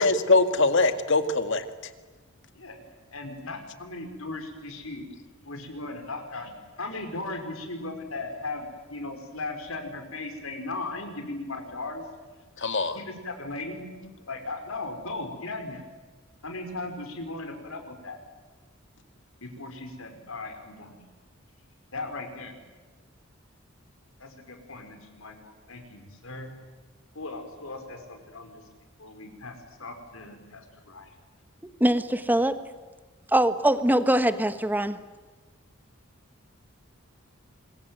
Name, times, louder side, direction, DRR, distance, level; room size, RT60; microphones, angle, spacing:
voice 1, 0.0-1.6 12.6-13.0, left 3 dB, 65° left, 9 dB, 2.0 m, -22 dB
voice 2, 3.1-5.1 5.4-12.0 12.9-13.8 14.3-15.8 16.4-18.2 19.4-21.0 21.9-22.5 24.2-26.5 27.1-28.6 29.0-31.1, left 2 dB, 80° left, 6 dB, 5.2 m, -37 dB
voice 3, 31.8-32.5 33.3-35.0, right 1 dB, 10° right, 11 dB, 1.3 m, -22 dB
26.0 x 22.5 x 9.3 m, 1.3 s
head